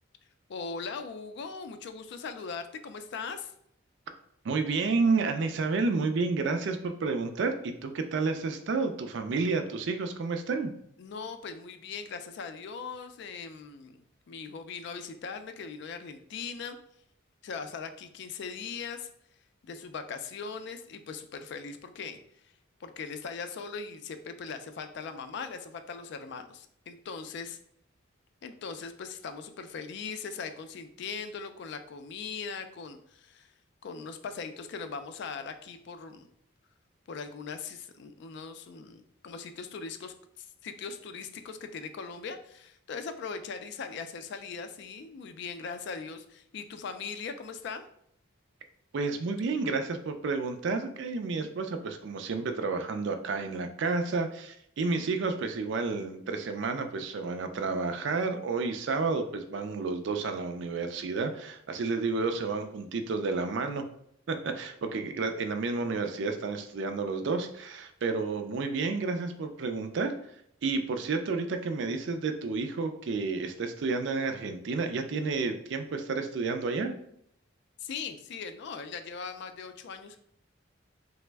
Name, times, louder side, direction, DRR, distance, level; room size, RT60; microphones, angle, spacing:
voice 1, 0.5-3.5 11.0-16.8 17.4-19.1 19.6-22.2 22.8-27.6 28.4-33.5 33.8-36.3 37.1-47.9 77.8-80.2, left 5 dB, 60° left, 9 dB, 0.3 m, -40 dB
voice 2, 4.4-10.7 48.9-63.8 64.3-70.1 70.6-76.9, right 4 dB, 60° right, 7 dB, 0.4 m, -30 dB
3.2 x 2.0 x 3.3 m, 0.71 s
head